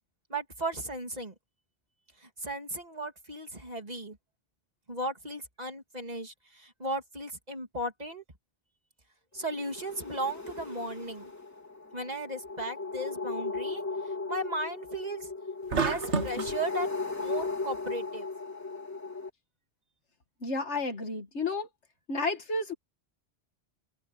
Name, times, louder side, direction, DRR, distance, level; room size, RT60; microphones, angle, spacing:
voice 1, 0.3-1.3 2.2-4.2 4.9-8.2 9.3-11.3 11.9-13.8 14.3-15.3 15.7-18.3, right 1 dB, 35° right, 3.0 m, -36 dB
sound 1, 9.4-19.3, left 3 dB, 15° left, 3.4 m, -36 dB
sound 2, 15.7-16.6, right 5 dB, 80° right, 1.8 m, -29 dB
voice 2, 20.4-21.7 22.1-22.7, left 3 dB, 85° left, 2.2 m, -31 dB
omnidirectional pair, 1.1 m